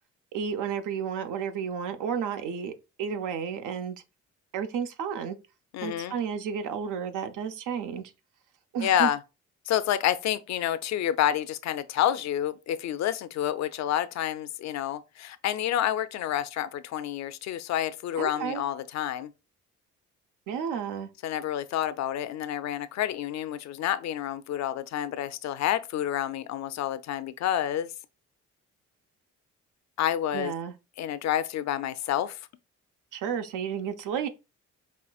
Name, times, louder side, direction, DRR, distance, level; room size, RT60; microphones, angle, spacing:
voice 1, 0.3-2.7 3.0-4.0 4.5-5.4 5.8-8.0 8.7-9.1 18.2-18.6 20.5-21.1 30.3-30.7 33.1-34.3, right 7 dB, 90° right, 0.6 m, -32 dB
voice 2, 5.7-6.2 8.8-9.2 9.7-19.3 21.2-27.9 30.0-30.5 31.0-32.4, left 11 dB, 65° left, 0.4 m, -29 dB
5.6 x 2.4 x 2.3 m
cardioid pair, 90°, 30 cm